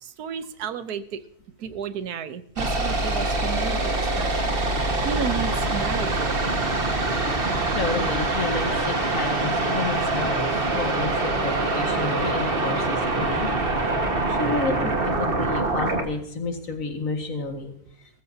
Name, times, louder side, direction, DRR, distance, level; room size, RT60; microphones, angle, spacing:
voice 1, 0.0-1.2 1.6-6.4, right 8 dB, 80° right, 12 dB, 1.4 m, -33 dB
sound 1, 2.6-16.0, right 2 dB, 40° right, 1.8 m, -24 dB
voice 2, 7.7-13.5 13.8-14.0 14.3-17.7, left 4 dB, 60° left, 4 dB, 2.2 m, -31 dB
20.5 x 14.5 x 2.8 m, 0.66 s
omnidirectional pair, 1.6 m